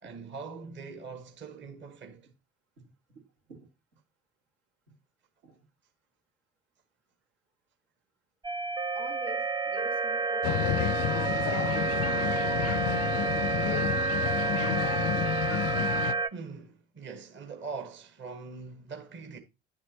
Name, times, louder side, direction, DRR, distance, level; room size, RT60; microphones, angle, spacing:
voice 1, 0.0-2.3 16.3-19.4, right 4 dB, 30° right, 1.1 m, -42 dB
voice 2, 2.8-3.2 3.5-3.7 5.4-5.7 8.9-13.3 13.6-14.8, right 2 dB, 80° right, 2.2 m, -50 dB
sound 1, 8.4-16.3, right 4 dB, 15° right, 0.4 m, -29 dB
sound 2, 10.4-16.1, left 12 dB, 45° left, 0.4 m, -30 dB
9.8 x 7.3 x 2.8 m
figure-of-eight pair, 50°, 35 cm